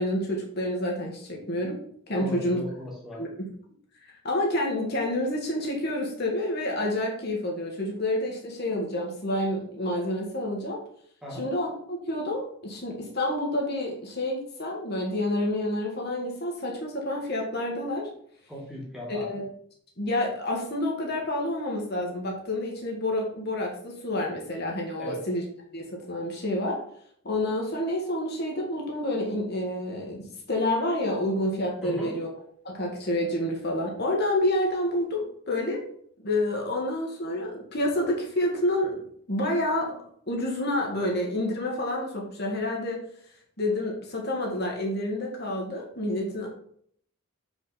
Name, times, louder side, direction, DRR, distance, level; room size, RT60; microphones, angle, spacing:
voice 1, 0.0-1.8 2.1-2.6 3.2-3.3 4.0-10.8 11.4-18.1 19.1-19.4 20.0-25.4 25.7-26.8 27.2-32.3 32.6-35.8 36.2-43.0 43.6-46.5, left 1 dB, 45° left, 0 dB, 1.6 m, -28 dB
voice 2, 2.1-3.2 11.2-11.4 18.5-19.3 25.0-25.2 31.8-32.1, left 1 dB, ahead, -4 dB, 2.0 m, -37 dB
7.0 x 5.1 x 4.2 m, 0.63 s
head